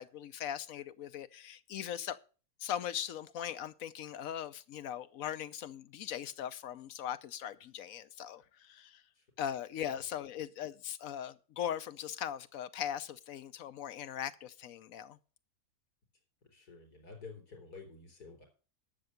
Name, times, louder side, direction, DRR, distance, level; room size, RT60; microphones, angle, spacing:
voice 1, 0.0-2.2 2.6-9.0 9.4-15.2, left 10 dB, 70° left, 1.1 m, -40 dB
voice 2, 16.5-18.4, left 4 dB, 90° left, 4.2 m, -50 dB
11.5 x 6.9 x 6.4 m
omnidirectional pair, 1.6 m